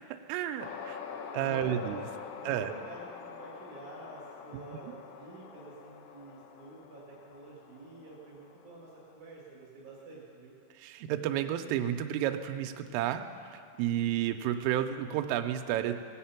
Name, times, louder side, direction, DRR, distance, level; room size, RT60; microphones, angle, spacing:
voice 1, 0.3-1.0 1.3-2.0 2.4-2.7 4.8-4.9 10.8-13.2 13.8-15.9, right 11 dB, 90° right, 6 dB, 3.2 m, -31 dB
sound 1, 0.6-9.1, left 6 dB, 80° left, 3.4 m, -46 dB
voice 2, 1.4-1.9 2.3-10.5, right 3 dB, 45° right, -5 dB, 2.9 m, -48 dB
19.0 x 8.2 x 5.8 m, 2.3 s
omnidirectional pair, 5.7 m